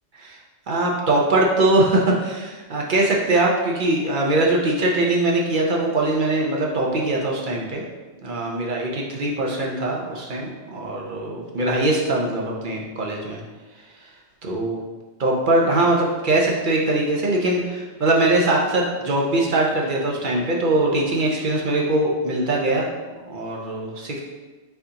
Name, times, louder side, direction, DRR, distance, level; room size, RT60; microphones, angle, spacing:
voice 1, 0.7-7.8 8.2-13.4 14.4-14.8 15.2-22.9 23.3-24.2, right 2 dB, 55° right, -2 dB, 0.7 m, -21 dB
4.4 x 3.8 x 2.8 m, 1.2 s
omnidirectional pair, 1.2 m